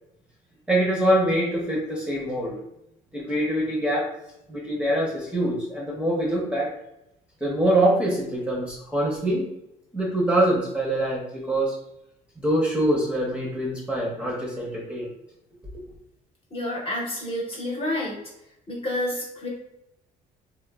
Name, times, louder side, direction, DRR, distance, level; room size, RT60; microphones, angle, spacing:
voice 1, 0.7-2.5 3.1-4.1 4.5-6.7 7.4-9.5 9.9-11.8 12.4-15.1, right 1 dB, 5° right, -4 dB, 0.6 m, -24 dB
voice 2, 16.5-18.2 18.7-19.5, left 1 dB, 35° left, -3 dB, 0.8 m, -29 dB
2.9 x 2.0 x 2.2 m, 0.82 s
cardioid pair, 110°, 17 cm